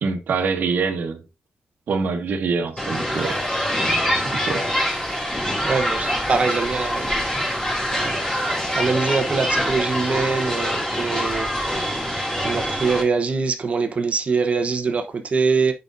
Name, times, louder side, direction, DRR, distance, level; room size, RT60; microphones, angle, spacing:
voice 1, 0.0-1.2 1.9-3.4 4.2-4.7, right 5 dB, 65° right, 1.2 m, -25 dB
sound 1, 2.8-13.0, equal, 25° left, 3.0 m, -24 dB
voice 2, 5.6-7.5 7.9-8.2 8.6-12.0 12.4-15.7, right 4 dB, 40° right, 0.9 m, -24 dB
8.9 x 5.2 x 2.6 m
wide cardioid pair, 145°, 3 cm